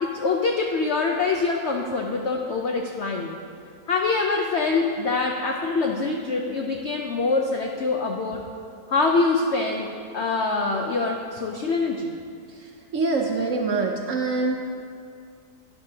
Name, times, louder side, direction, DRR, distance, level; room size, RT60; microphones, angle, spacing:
voice 1, 0.0-3.3 3.9-8.5 8.9-12.2, left 3 dB, 80° left, 2 dB, 0.6 m, -24 dB
voice 2, 12.5-14.6, right 3 dB, 60° right, 1 dB, 0.8 m, -25 dB
11.5 x 10.5 x 2.8 m, 2.4 s
omnidirectional pair, 1.9 m